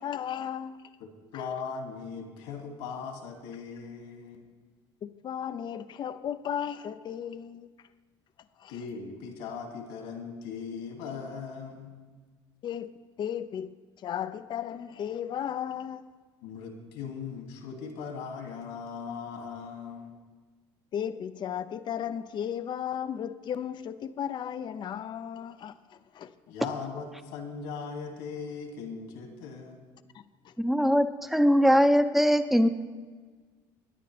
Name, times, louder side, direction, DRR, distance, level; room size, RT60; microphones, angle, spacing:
voice 1, 0.0-0.8 5.0-7.7 8.6-8.7 12.6-12.9 13.2-13.7 14.0-16.0 20.9-26.3 30.1-30.5, left 9 dB, 45° left, 0.6 m, -35 dB
voice 2, 1.0-4.5 8.7-11.9 16.4-20.2 26.5-29.8, left 5 dB, 80° left, 2.3 m, -39 dB
voice 3, 30.6-32.7, equal, ahead, 0.9 m, -21 dB
22.5 x 10.0 x 3.4 m
supercardioid pair, 90°, 11 cm